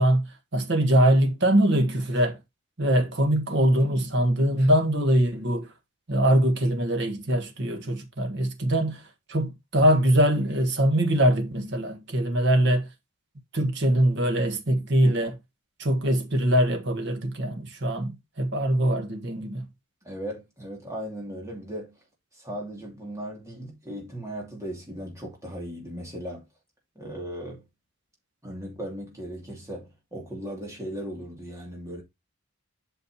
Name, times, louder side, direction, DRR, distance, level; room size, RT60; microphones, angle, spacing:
voice 1, 0.0-2.4 2.8-5.7 6.1-9.0 9.3-12.9 13.5-15.3 15.8-19.7, right 1 dB, 55° right, 1.5 m, -23 dB
voice 2, 20.0-21.9 22.3-26.4 27.0-27.6 28.4-32.0, equal, 15° right, 2.5 m, -37 dB
8.3 x 5.8 x 2.8 m
head